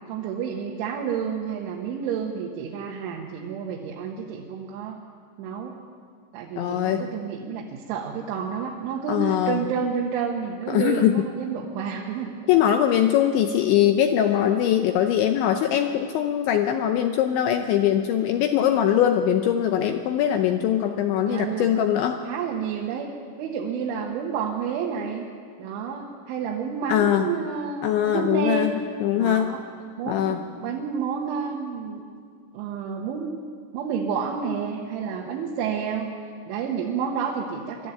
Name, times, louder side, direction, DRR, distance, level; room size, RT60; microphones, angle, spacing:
voice 1, 0.1-5.0 5.4-5.8 6.3-12.4 12.9-13.0 21.3-21.7 22.3-23.1 23.4-25.3 25.6-28.8 29.1-29.6 30.0-32.0 32.5-33.5 33.7-36.1 36.5-37.9, right 6 dB, 70° right, -2 dB, 3.6 m, -30 dB
voice 2, 6.6-7.1 9.1-9.6 10.7-11.2 12.5-22.2 26.9-27.3 27.8-28.7 29.0-29.5 30.1-30.4, left 10 dB, 80° left, 5 dB, 2.8 m, -22 dB
22.5 x 13.5 x 9.3 m, 2.1 s
omnidirectional pair, 6.0 m